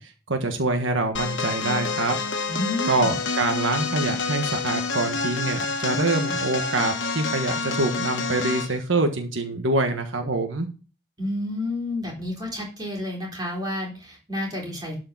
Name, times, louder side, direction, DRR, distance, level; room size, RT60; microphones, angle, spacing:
voice 1, 0.0-2.2 2.9-10.7, right 2 dB, 85° right, 5 dB, 1.4 m, -25 dB
sound 1, 1.1-8.8, left 4 dB, 75° left, 1.4 m, -28 dB
voice 2, 2.5-3.2 11.2-15.0, left 1 dB, 20° right, -1 dB, 3.8 m, -30 dB
12.0 x 4.9 x 6.1 m, 0.34 s
head